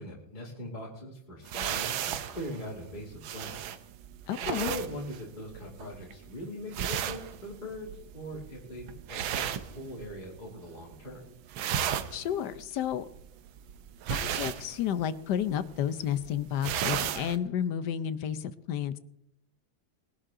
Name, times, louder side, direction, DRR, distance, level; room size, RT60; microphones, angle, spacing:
voice 1, 0.0-3.7 4.4-11.3, equal, 20° left, -4 dB, 2.8 m, -41 dB
sound 1, 1.4-10.4 10.7-11.1 11.4-17.4, right 9 dB, 75° right, 1.6 m, -35 dB
voice 2, 4.3-4.7 12.1-13.1 14.1-19.0, left 9 dB, 65° left, 14 dB, 1.2 m, -31 dB
20.5 x 11.5 x 3.7 m, 0.79 s
omnidirectional pair, 2.2 m